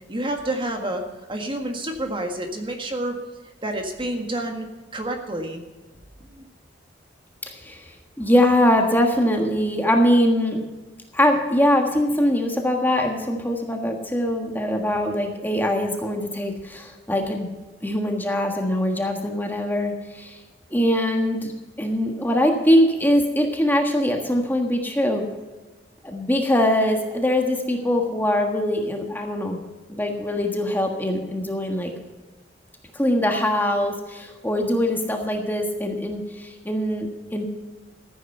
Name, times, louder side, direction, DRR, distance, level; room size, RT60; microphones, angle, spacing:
voice 1, 0.1-1.0 1.3-3.2 3.6-4.7 4.9-5.6 6.3-6.4 20.7-20.8 34.6-34.8, right 1 dB, 25° right, 4 dB, 1.7 m, -29 dB
voice 2, 7.4-10.6 11.1-17.5 17.8-20.4 20.7-21.5 21.8-25.2 26.0-29.6 29.9-31.9 32.9-37.4, left 1 dB, 10° left, 3 dB, 1.5 m, -22 dB
14.5 x 9.2 x 5.5 m, 1.3 s
head